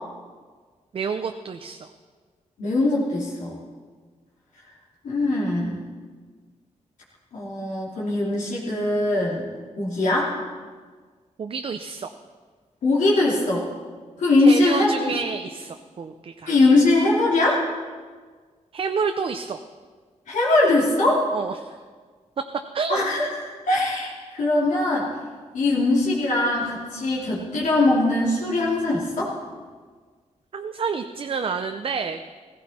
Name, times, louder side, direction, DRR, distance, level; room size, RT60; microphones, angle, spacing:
voice 1, 0.9-1.9 11.4-12.1 14.4-16.5 18.7-19.6 21.3-21.7 22.7-23.1 30.5-32.2, right 5 dB, 45° right, 7 dB, 0.6 m, -29 dB
voice 2, 2.6-3.6 5.0-5.8 7.3-9.4 9.8-10.3 12.8-13.6 14.2-14.9 16.5-17.6 20.3-21.3 22.9-23.3 23.7-25.1 25.5-29.4, left 2 dB, 85° left, -5 dB, 3.0 m, -21 dB
16.0 x 15.5 x 4.3 m, 1.5 s
wide cardioid pair, 135°, 13 cm